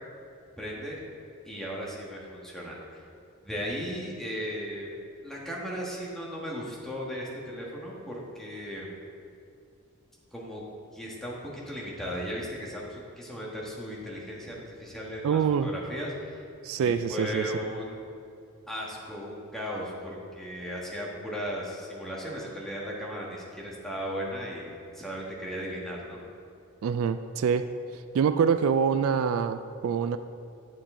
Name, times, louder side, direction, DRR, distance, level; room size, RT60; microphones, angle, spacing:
voice 1, 0.6-1.0 1.4-3.0 3.4-4.9 5.2-8.9 10.3-10.6 10.9-16.4 16.8-18.0 18.7-26.2, equal, ahead, -5 dB, 1.5 m, -36 dB
voice 2, 15.2-15.7 16.6-17.4 26.8-27.7 28.1-30.2, right 6 dB, 70° right, 10 dB, 0.3 m, -25 dB
9.4 x 7.1 x 3.7 m, 2.5 s
head